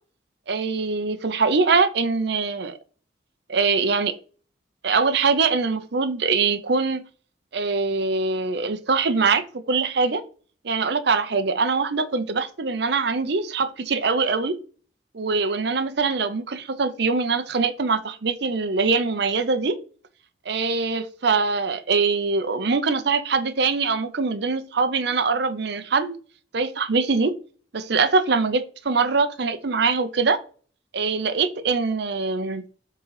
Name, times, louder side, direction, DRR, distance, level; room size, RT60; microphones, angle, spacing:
voice 1, 0.5-2.8 3.5-4.1 4.8-7.0 7.5-10.2 10.6-14.6 15.1-19.8 20.5-26.2 26.5-27.3 27.7-30.4 30.9-32.6, right 4 dB, 65° right, 0.7 m, -23 dB
7.6 x 3.9 x 4.8 m
head